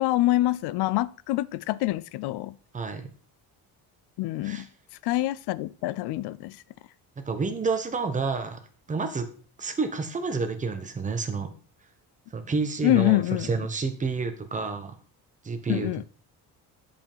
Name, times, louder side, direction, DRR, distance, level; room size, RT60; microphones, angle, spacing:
voice 1, 0.0-2.5 4.2-4.7 5.0-6.6 12.8-13.5 15.7-16.0, left 16 dB, 80° left, 0.6 m, -25 dB
voice 2, 2.7-3.1 4.4-4.7 7.2-8.6 8.9-9.3 9.6-11.5 12.3-15.0 15.4-16.0, right 4 dB, 20° right, 1.1 m, -29 dB
9.9 x 5.3 x 5.5 m
cardioid pair, 170°, 39 cm